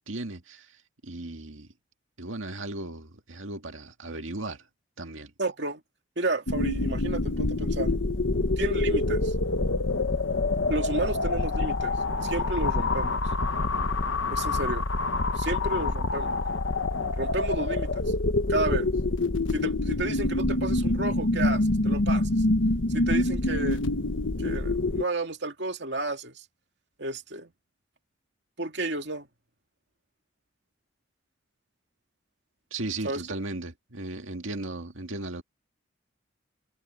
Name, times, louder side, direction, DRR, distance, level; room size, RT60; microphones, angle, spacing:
voice 1, 0.0-1.7 2.2-4.7 5.0-5.3 32.7-35.4, right 2 dB, 90° right, 2.0 m, -36 dB
voice 2, 5.4-5.8 6.2-7.9 8.6-9.3 10.7-12.0 12.2-13.2 14.3-14.9 15.3-16.4 17.2-18.1 18.5-18.9 19.5-22.3 22.9-23.8 24.4-26.4 27.0-27.5 28.6-29.3 33.0-33.2, right 2 dB, 60° right, 2.5 m, -31 dB
sound 1, 6.5-25.0, left 2 dB, 80° left, 1.2 m, -26 dB
head